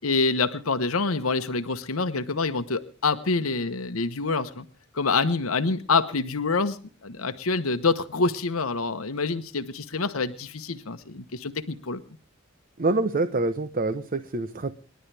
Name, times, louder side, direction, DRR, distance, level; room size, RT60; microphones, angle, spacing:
voice 1, 0.0-4.6 4.9-12.0, left 4 dB, 85° left, 9 dB, 1.1 m, -26 dB
voice 2, 12.8-14.7, right 2 dB, 45° right, 12 dB, 0.9 m, -26 dB
28.0 x 11.5 x 3.4 m, 0.38 s
head